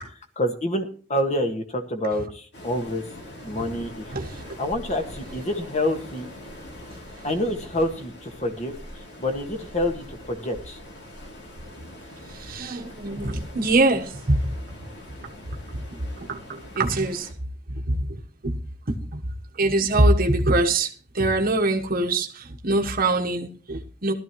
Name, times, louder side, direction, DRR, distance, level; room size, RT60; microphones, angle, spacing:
voice 1, 0.4-3.0 3.4-4.1 4.6-6.3 7.2-10.8, left 1 dB, 40° left, 5 dB, 1.6 m, -27 dB
Waves surf, 2.5-17.3, left 1 dB, 65° left, 2.8 m, -42 dB
voice 2, 4.1-4.4 12.3-14.5 15.9-16.0 16.3-17.3 17.9-18.6 18.9-19.2 19.5-24.1, right 2 dB, 50° right, 1 dB, 1.1 m, -23 dB
16.5 x 12.5 x 3.0 m, 0.41 s
head